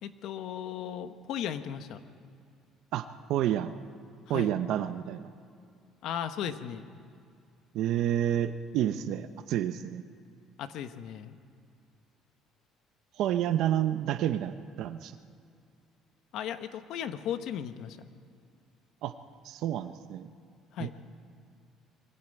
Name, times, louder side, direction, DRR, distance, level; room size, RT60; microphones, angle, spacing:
voice 1, 0.0-2.0 4.3-4.5 6.0-6.9 10.6-11.4 16.3-18.0 20.7-20.9, left 9 dB, 65° left, 9 dB, 1.2 m, -36 dB
voice 2, 2.9-3.7 4.3-5.2 7.7-10.0 13.2-15.2 19.0-19.1 19.4-20.3 20.8-21.0, right 11 dB, 70° right, 9 dB, 0.8 m, -29 dB
23.0 x 14.5 x 9.1 m, 2.4 s
cardioid pair, 135°, 0 cm